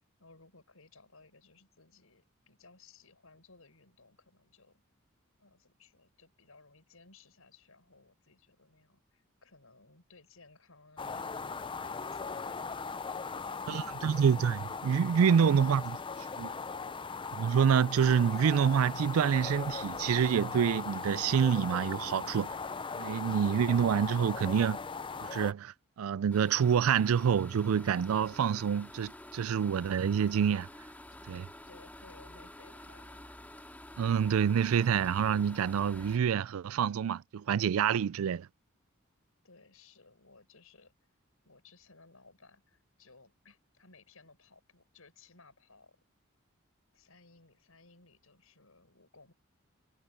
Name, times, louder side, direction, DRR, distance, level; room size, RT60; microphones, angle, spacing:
voice 1, 0.2-4.8 5.4-12.6 13.1-14.1 15.2-15.7 31.1-33.3 39.4-40.9 41.4-46.0 46.9-49.3, left 3 dB, 80° left, 6.1 m, -60 dB
sound 1, 11.0-25.5, left 5 dB, 25° left, 0.5 m, -39 dB
voice 2, 13.7-16.0 16.4-16.5 17.3-22.5 23.0-24.8 25.2-30.7 31.3-31.4 34.0-38.5, right 7 dB, 80° right, 0.4 m, -27 dB
sound 2, 26.3-36.2, left 1 dB, 10° left, 2.1 m, -49 dB
head